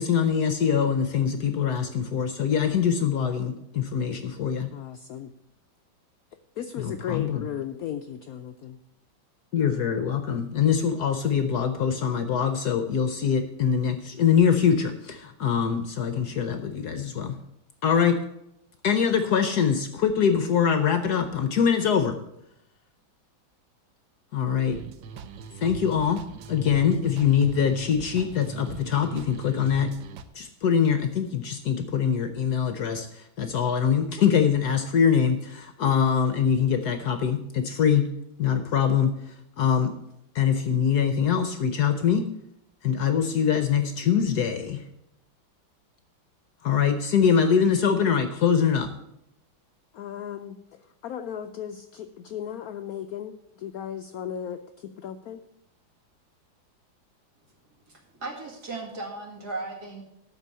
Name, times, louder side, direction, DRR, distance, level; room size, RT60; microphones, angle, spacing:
voice 1, 0.0-4.7 6.8-7.4 9.5-17.4 17.8-18.2 18.8-22.2 24.3-24.8 25.6-29.9 30.3-38.1 38.4-39.9 40.3-42.3 42.8-44.8 46.6-48.9, left 7 dB, 65° left, 8 dB, 1.1 m, -23 dB
voice 2, 4.7-5.3 6.6-8.8 49.9-55.4, left 9 dB, 85° left, 8 dB, 0.7 m, -36 dB
sound 1, 24.7-30.2, right 5 dB, 75° right, 1.4 m, -40 dB
voice 3, 57.9-60.0, right 3 dB, 50° right, -1 dB, 2.8 m, -36 dB
13.0 x 4.6 x 8.1 m, 0.82 s
omnidirectional pair, 2.2 m